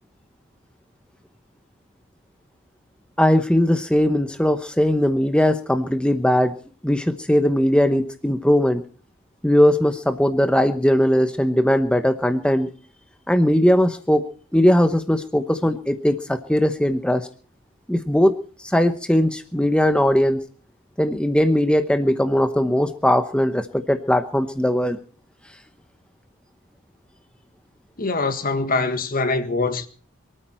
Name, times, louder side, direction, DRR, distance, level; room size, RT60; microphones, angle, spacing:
voice 1, 3.2-6.5 6.8-8.8 9.4-12.7 13.3-14.2 14.5-17.3 17.9-20.4 21.0-25.0, equal, 5° left, 0.9 m, -19 dB
voice 2, 28.0-29.9, left 3 dB, 40° left, 1.5 m, -23 dB
23.5 x 13.5 x 4.4 m
head